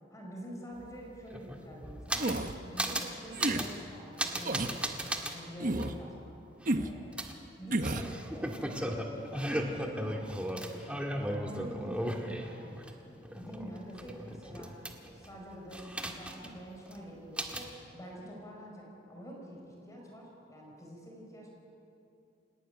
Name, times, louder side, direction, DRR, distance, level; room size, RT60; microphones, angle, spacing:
voice 1, 0.0-2.4 2.6-6.4 6.8-10.2 10.5-21.5, equal, 20° left, -1 dB, 5.2 m, -47 dB
sound 1, 0.8-0.9 1.1-2.5 2.8-3.1 3.4-3.7 4.2-5.3 5.8-5.9 7.2-12.9 13.2-15.3 15.7-16.6 16.9-17.0 17.4-17.7, right 1 dB, 5° right, 1.7 m, -36 dB
sound 2, 2.2-2.6 3.3-3.7 4.4-4.8 5.6-6.0 6.7-6.9 7.7-8.1, right 1 dB, 50° right, 1.1 m, -31 dB
29.5 x 13.0 x 9.3 m, 2.7 s
head